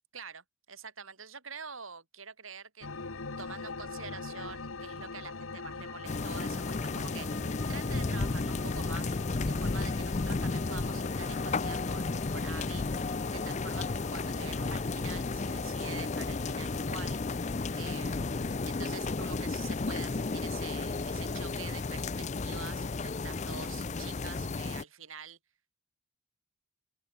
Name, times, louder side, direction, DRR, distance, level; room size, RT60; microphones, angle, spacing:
voice 1, 0.1-9.1 9.5-17.2 17.8-18.3 18.6-25.4, right 6 dB, 85° right, 6.5 m, -46 dB
sound 1, 2.8-22.0, left 3 dB, 90° left, 1.5 m, -45 dB
sound 2, 6.1-24.8, left 3 dB, 35° left, 0.5 m, -33 dB
open air
head